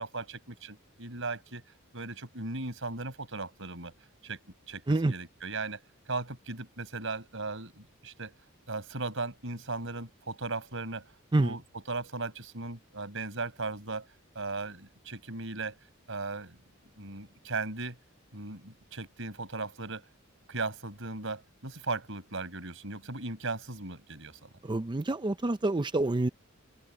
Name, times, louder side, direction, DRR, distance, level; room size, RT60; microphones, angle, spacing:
voice 1, 0.0-1.6 1.9-3.9 4.2-4.4 4.7-5.8 6.1-8.4 8.7-11.1 11.4-14.1 14.3-15.7 16.1-16.6 17.0-18.0 18.3-20.1 20.5-24.5, right 3 dB, 65° right, 6.2 m, -37 dB
voice 2, 24.6-26.3, right 2 dB, 20° right, 0.5 m, -27 dB
head